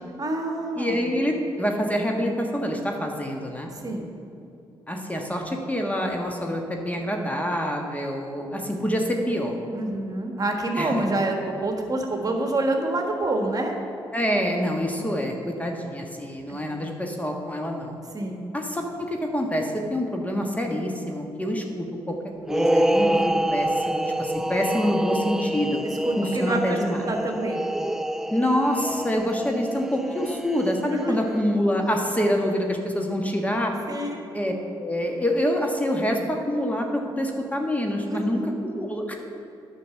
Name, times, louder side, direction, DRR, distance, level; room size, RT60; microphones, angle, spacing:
voice 1, 0.2-1.1 3.7-4.1 9.7-13.8 16.5-16.8 18.1-18.4 25.8-26.8 27.1-27.7 30.9-31.2 33.9-34.2 38.0-38.5, right 2 dB, 40° right, 2 dB, 1.5 m, -27 dB
voice 2, 0.8-3.7 4.9-9.6 10.7-11.0 14.1-18.0 18.5-22.2 22.5-25.8 26.2-27.0 28.3-33.7 34.3-34.5 34.8-39.2, equal, 15° left, 2 dB, 1.4 m, -26 dB
sound 1, 22.4-31.0, right 1 dB, 5° right, 0.3 m, -26 dB
9.2 x 6.0 x 7.1 m, 2.7 s
supercardioid pair, 60°, 10 cm